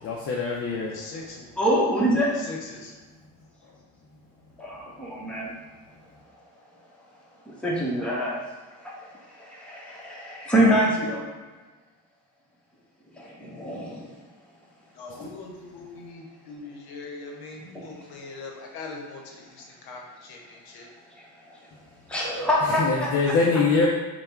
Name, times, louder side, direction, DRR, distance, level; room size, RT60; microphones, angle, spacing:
voice 1, 0.0-1.0 22.8-23.9, left 4 dB, 40° left, -2 dB, 0.5 m, -23 dB
voice 2, 0.9-1.5 2.4-2.9 14.9-20.9, left 3 dB, 75° left, 0 dB, 0.8 m, -41 dB
voice 3, 1.6-2.3 4.6-5.5 7.4-8.4 8.7-11.3 13.1-14.1 17.7-18.1 21.2-21.7 22.1-23.1 23.5-23.6, equal, 5° left, -5 dB, 1.0 m, -26 dB
3.4 x 2.3 x 4.4 m, 1.3 s
cardioid pair, 95°, 36 cm